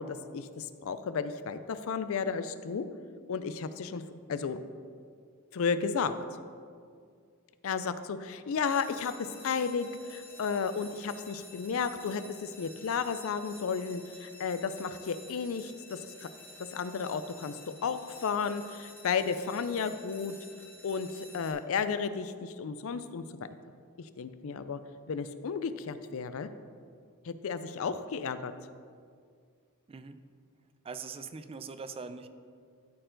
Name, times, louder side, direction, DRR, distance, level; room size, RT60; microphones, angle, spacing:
voice 1, 0.0-2.9 3.3-4.0 4.3-4.6 5.5-6.1 7.6-16.3 16.7-20.4 20.8-23.2 24.0-24.8 25.1-26.5 27.2-28.5, left 5 dB, 70° left, 12 dB, 0.4 m, -33 dB
sound 1, 8.6-21.5, left 2 dB, 10° left, 0.9 m, -51 dB
voice 2, 29.9-30.2 30.8-32.3, right 5 dB, 25° right, 10 dB, 0.4 m, -42 dB
13.5 x 4.5 x 3.8 m, 2.1 s
head